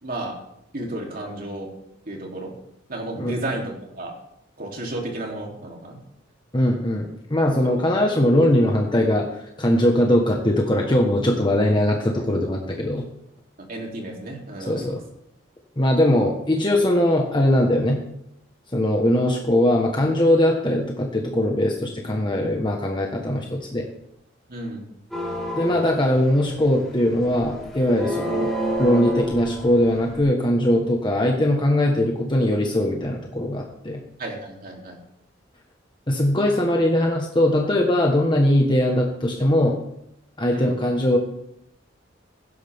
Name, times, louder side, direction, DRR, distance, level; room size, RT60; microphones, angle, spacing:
voice 1, 0.0-0.4 0.7-1.7 2.1-2.5 2.9-4.1 4.6-6.0 13.7-14.9 24.5-24.8 34.2-35.0 40.5-40.7, right 1 dB, 50° right, -1 dB, 3.3 m, -32 dB
voice 2, 6.5-13.0 14.7-15.0 15.8-18.0 18.7-23.9 25.6-28.5 28.8-34.0 36.1-39.8 40.4-41.2, left 1 dB, 25° left, 0 dB, 1.4 m, -20 dB
sound 1, 25.1-30.2, right 1 dB, ahead, 4.2 m, -29 dB
17.0 x 12.0 x 3.6 m, 0.80 s
head